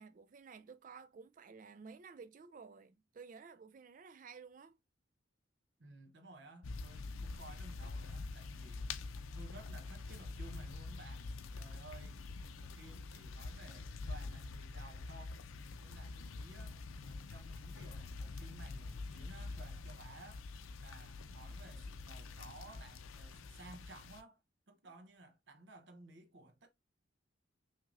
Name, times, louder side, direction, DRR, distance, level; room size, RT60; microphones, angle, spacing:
voice 1, 0.0-4.8, right 5 dB, 40° right, 0.3 m, -54 dB
voice 2, 5.8-8.9 9.3-12.2 12.5-15.4 15.8-20.5 20.8-24.4 24.7-26.7, right 2 dB, 60° right, 0.9 m, -56 dB
sound 1, 6.6-24.2, left 3 dB, 90° left, 0.5 m, -46 dB
5.9 x 2.8 x 2.5 m
head